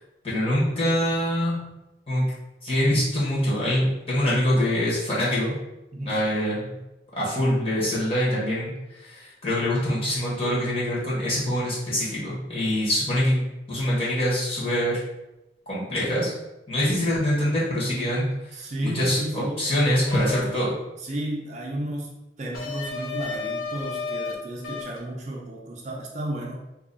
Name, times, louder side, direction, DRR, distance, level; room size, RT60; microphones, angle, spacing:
voice 1, 0.2-1.6 2.1-2.3 2.6-5.6 6.0-6.8 7.2-15.0 15.7-16.3 16.7-18.3 18.8-20.7, equal, 35° left, -8 dB, 1.3 m, -24 dB
voice 2, 18.2-19.6 21.0-26.6, right 1 dB, 40° right, -1 dB, 0.5 m, -33 dB
sound 1, 20.1-20.4 22.5-24.3 24.6-25.0, left 4 dB, 55° left, 0.8 m, -32 dB
3.0 x 2.3 x 3.9 m, 0.95 s
head